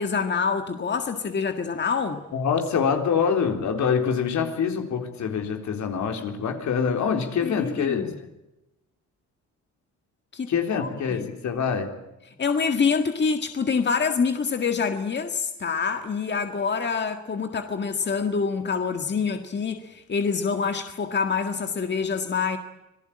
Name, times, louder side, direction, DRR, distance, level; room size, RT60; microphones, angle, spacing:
voice 1, 0.0-2.2 7.4-8.1 10.3-11.3 12.4-22.6, left 5 dB, 35° left, 1.8 m, -26 dB
voice 2, 2.3-8.1 10.5-11.9, left 6 dB, 65° left, 3.9 m, -25 dB
26.5 x 18.0 x 8.8 m
cardioid pair, 90°, 30 cm